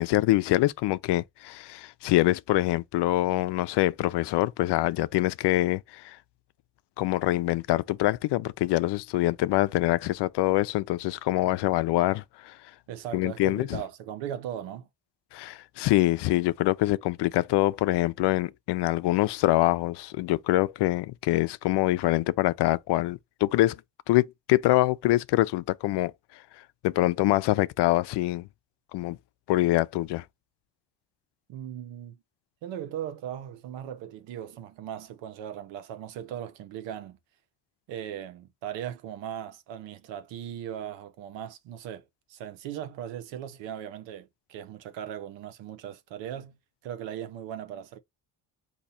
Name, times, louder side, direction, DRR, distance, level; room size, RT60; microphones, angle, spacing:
voice 1, 0.0-6.2 7.0-12.6 13.1-13.8 15.3-23.8 24.1-26.1 26.8-28.5 28.9-29.2 29.5-30.2, left 17 dB, 70° left, 0.5 m, -25 dB
voice 2, 12.9-14.9 31.5-32.2 32.6-37.2 37.9-46.6 46.8-48.0, right 10 dB, 90° right, 0.8 m, -38 dB
4.1 x 2.8 x 4.1 m
cardioid pair, 75°, 42 cm